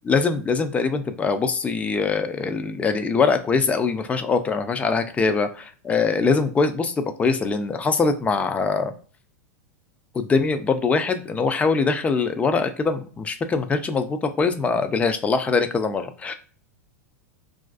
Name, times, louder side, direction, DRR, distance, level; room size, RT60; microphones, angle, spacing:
voice 1, 0.0-8.9 10.1-16.3, left 4 dB, 15° left, 8 dB, 0.3 m, -23 dB
2.4 x 2.2 x 2.4 m, 0.41 s
hypercardioid pair, 115°, 9 cm